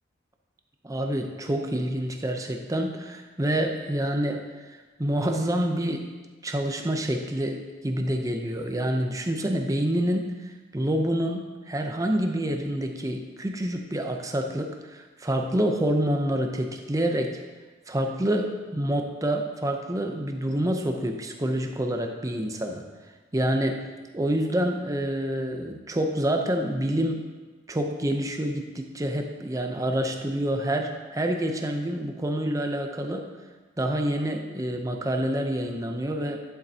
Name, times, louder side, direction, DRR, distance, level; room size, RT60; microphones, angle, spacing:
voice 1, 0.8-6.0 6.4-17.4 17.9-22.8 23.3-23.8 24.1-27.2 27.7-33.3 33.8-36.4, right 1 dB, 20° right, 4 dB, 0.6 m, -27 dB
10.5 x 7.4 x 2.8 m, 1.3 s
head